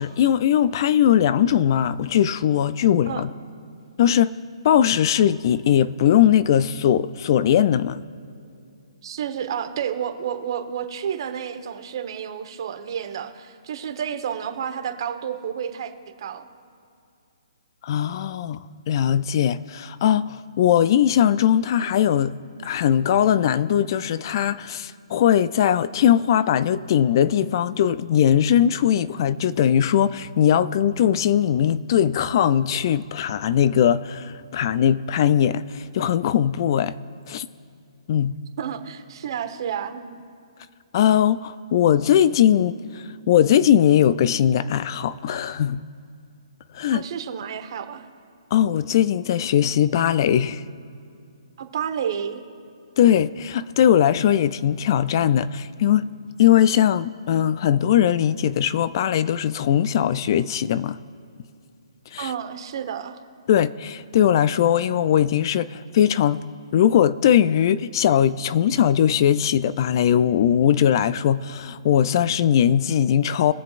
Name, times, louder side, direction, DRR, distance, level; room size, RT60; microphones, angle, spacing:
voice 1, 0.0-3.3 4.0-4.3 4.6-8.0 17.8-18.6 18.9-22.3 22.6-36.9 37.3-37.5 38.1-38.4 40.9-45.8 46.7-47.0 48.5-50.6 53.0-56.1 56.4-61.0 62.1-62.3 63.5-66.4 66.7-73.5, left 10 dB, 45° left, 0.4 m, -20 dB
voice 2, 9.0-15.9 16.2-16.5 38.6-40.2 46.9-48.1 51.6-52.4 62.2-63.2, right 8 dB, 50° right, 1.2 m, -30 dB
22.0 x 7.5 x 2.5 m
hypercardioid pair, 140°, 3 cm